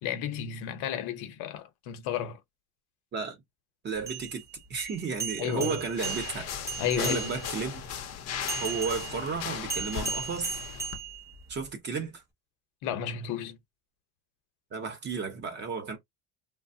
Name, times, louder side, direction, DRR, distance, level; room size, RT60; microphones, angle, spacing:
voice 1, 0.0-2.4 5.4-5.8 6.8-7.3 12.8-13.6, left 9 dB, 80° left, 0.8 m, -32 dB
voice 2, 3.1-3.4 3.8-4.4 4.7-6.5 7.0-7.9 8.6-10.6 11.5-12.2 14.7-16.0, right 5 dB, 30° right, 0.7 m, -33 dB
sound 1, 4.0-7.6 8.5-11.7, right 5 dB, 10° right, 0.4 m, -37 dB
sound 2, 6.0-11.0, left 8 dB, 45° left, 0.6 m, -37 dB
3.2 x 2.1 x 2.6 m
cardioid pair, 170°, 37 cm